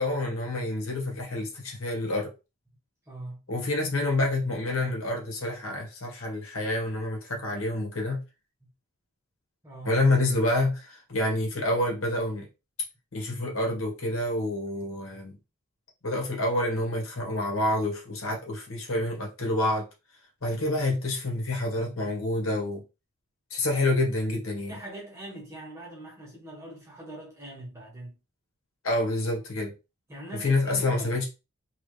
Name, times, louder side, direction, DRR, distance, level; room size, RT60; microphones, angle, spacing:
voice 1, 0.0-2.3 3.5-8.2 9.8-12.5 13.1-15.4 16.0-19.9 20.4-22.8 23.5-24.7 28.8-29.7 30.4-31.3, left 1 dB, 85° left, 1.7 m, -28 dB
voice 2, 3.1-3.5 8.6-8.7 9.6-10.0 24.7-28.2 30.1-31.2, right 1 dB, 15° right, 1.9 m, -42 dB
3.5 x 3.2 x 3.3 m
head